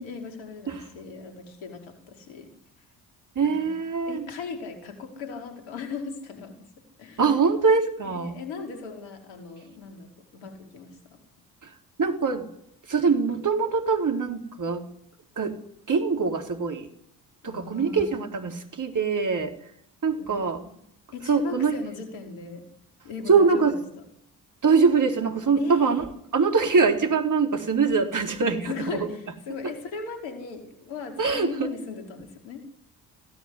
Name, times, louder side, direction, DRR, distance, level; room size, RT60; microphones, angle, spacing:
voice 1, 0.0-2.5 3.6-3.8 4.1-6.7 7.0-7.2 8.1-11.2 17.4-18.6 20.2-20.4 21.1-22.7 23.0-23.8 25.6-26.0 28.7-32.7, left 5 dB, 65° left, 4 dB, 5.2 m, -38 dB
voice 2, 3.4-4.3 7.2-8.4 11.6-11.7 12.0-12.5 12.9-14.8 15.4-15.6 15.9-16.9 17.4-19.5 20.0-20.7 21.3-21.7 23.3-23.7 24.6-26.1 26.3-29.1 29.6-29.7 31.2-31.7, right 5 dB, 40° right, 5 dB, 4.0 m, -23 dB
26.0 x 17.5 x 10.0 m, 0.71 s
figure-of-eight pair, 40°, 49 cm